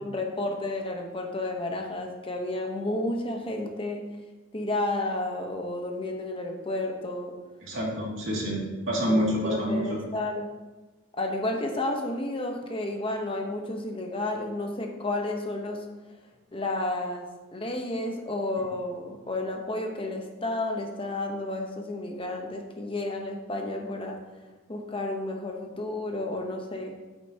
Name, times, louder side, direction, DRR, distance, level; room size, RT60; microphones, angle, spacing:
voice 1, 0.0-4.0 4.5-7.3 9.1-10.5 11.2-15.8 16.5-24.2 24.7-26.9, left 2 dB, 25° left, 2 dB, 0.9 m, -31 dB
voice 2, 7.6-10.0, equal, 70° right, -3 dB, 2.3 m, -27 dB
9.0 x 8.6 x 2.8 m, 1.2 s
head